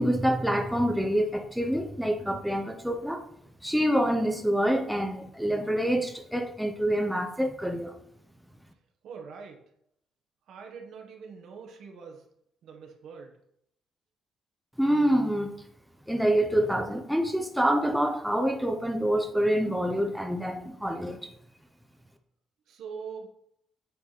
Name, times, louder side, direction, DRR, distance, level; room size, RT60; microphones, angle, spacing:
voice 1, 0.0-3.2 3.6-8.0 14.8-15.5 16.1-21.2, equal, ahead, 4 dB, 0.9 m, -26 dB
voice 2, 9.0-9.6 10.5-12.2 12.6-13.3 22.7-23.3, right 5 dB, 75° right, 3 dB, 1.4 m, -43 dB
8.5 x 4.8 x 4.2 m, 0.73 s
cardioid pair, 90°, 0 cm